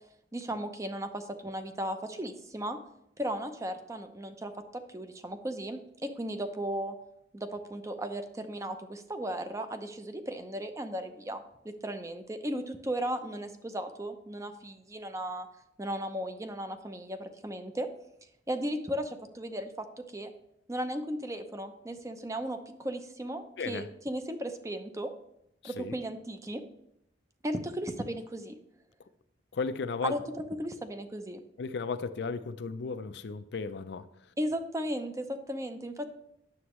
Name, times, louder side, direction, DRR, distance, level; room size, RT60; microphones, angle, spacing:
voice 1, 0.3-2.8 3.2-6.9 7.3-15.5 15.8-17.9 18.5-19.9 20.1-20.3 20.7-25.1 25.6-26.6 27.4-28.5 30.0-30.2 30.6-31.4 34.4-36.1, right 1 dB, 15° right, 8 dB, 0.6 m, -36 dB
voice 2, 23.6-23.9 25.6-25.9 29.5-30.1 31.6-34.1, left 4 dB, 65° left, 12 dB, 0.5 m, -35 dB
9.6 x 7.1 x 3.1 m, 0.80 s
head